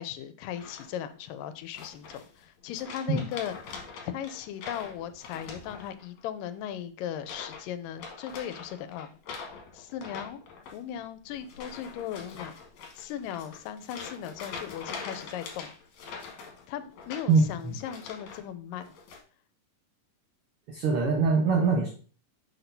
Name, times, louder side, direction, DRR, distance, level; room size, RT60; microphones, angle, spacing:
voice 1, 0.0-3.6 4.0-9.1 9.7-10.4 10.7-12.6 13.0-15.7 16.7-18.9, left 10 dB, 85° left, 11 dB, 2.2 m, -37 dB
sound 1, 0.6-1.1 1.7-2.4 2.7-6.2 6.5-6.8 7.2-7.7 7.9-18.4 18.7-19.2, left 5 dB, 65° left, 2.5 m, -44 dB
voice 2, 17.3-17.8 20.7-21.9, right 4 dB, 65° right, -1 dB, 1.4 m, -23 dB
6.4 x 5.9 x 2.7 m, 0.40 s
omnidirectional pair, 3.8 m